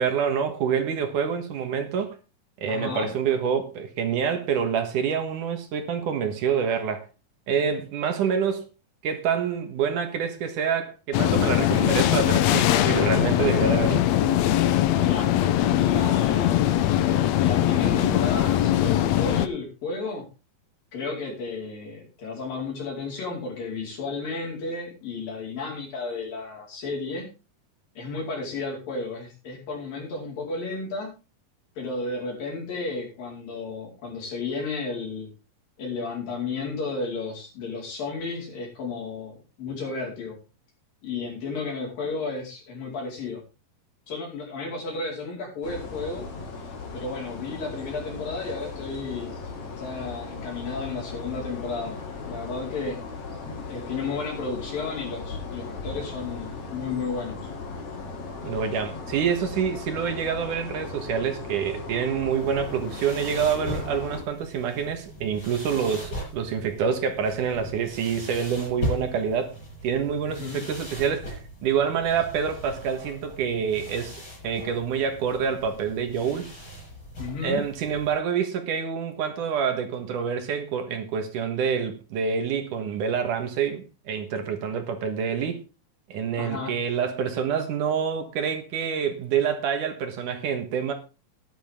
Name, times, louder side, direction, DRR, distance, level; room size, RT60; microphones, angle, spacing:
voice 1, 0.0-2.1 2.6-7.1 7.5-8.7 9.0-14.1 58.4-69.6 69.8-71.3 71.6-76.5 77.4-85.6 86.1-90.9, right 7 dB, 65° right, 2.8 m, -27 dB
voice 2, 2.7-3.1 15.0-15.3 15.7-16.9 17.4-20.2 20.9-27.3 28.0-31.1 31.8-35.3 35.8-40.4 41.0-43.4 44.1-46.3 46.9-49.4 49.7-52.0 52.2-53.0 53.5-57.4 70.3-70.7 77.2-77.6 86.4-86.7, left 4 dB, 70° left, 6.5 m, -33 dB
sound 1, 11.1-19.5, left 12 dB, 90° left, 1.5 m, -21 dB
sound 2, 45.6-64.2, left 4 dB, 55° left, 3.2 m, -37 dB
sound 3, 62.3-78.2, left 1 dB, 30° left, 8.1 m, -39 dB
13.5 x 11.0 x 3.7 m
omnidirectional pair, 4.1 m